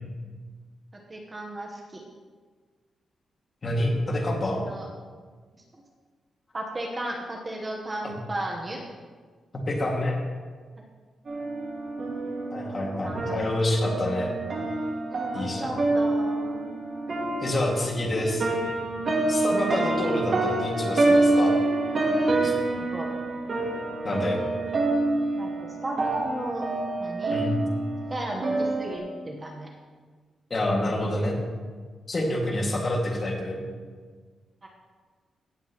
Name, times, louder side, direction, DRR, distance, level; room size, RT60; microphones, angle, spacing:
voice 1, 0.9-2.0 4.4-4.9 5.7-5.8 6.5-8.8 13.0-13.4 15.1-16.7 22.7-23.1 25.4-26.6 27.0-27.4 28.1-29.7 34.6-34.7, right 1 dB, 25° right, 0 dB, 1.1 m, -35 dB
voice 2, 3.6-4.6 8.0-8.1 9.7-10.2 12.5-14.3 15.3-15.7 17.4-18.5 19.3-21.5 22.4-22.5 24.0-24.4 27.3-27.6 30.5-31.4 32.1-33.6, left 1 dB, 30° left, -1 dB, 2.2 m, -27 dB
sound 1, 11.3-29.0, right 2 dB, 45° right, 2.0 m, -27 dB
16.5 x 7.8 x 3.1 m, 1.5 s
wide cardioid pair, 130°, 0 cm